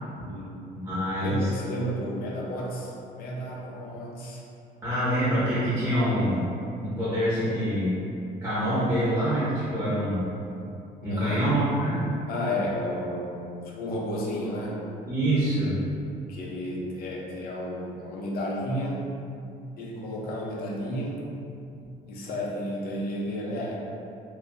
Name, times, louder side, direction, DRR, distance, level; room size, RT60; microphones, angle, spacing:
voice 1, 0.2-0.6 1.2-4.4 11.0-11.5 12.3-14.8 16.3-19.1 19.8-21.2 22.1-23.8, equal, 65° left, -3 dB, 0.7 m, -32 dB
voice 2, 0.8-1.5 4.8-6.5 6.8-8.0 8.4-10.4 11.0-12.0 15.1-15.8, equal, 15° right, -11 dB, 1.5 m, -25 dB
3.4 x 2.7 x 2.6 m, 2.6 s
cardioid pair, 110°, 17 cm